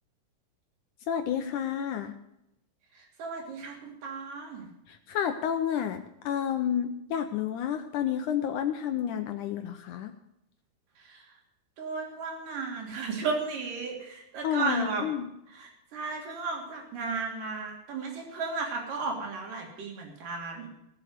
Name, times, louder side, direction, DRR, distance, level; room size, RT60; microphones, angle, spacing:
voice 1, 1.1-2.1 4.9-10.1 14.4-15.3, left 9 dB, 80° left, 7 dB, 1.8 m, -30 dB
voice 2, 2.9-4.7 11.0-11.2 11.8-15.1 15.5-20.7, right 4 dB, 55° right, 0 dB, 4.6 m, -34 dB
18.5 x 7.7 x 6.5 m, 0.83 s
omnidirectional pair, 4.6 m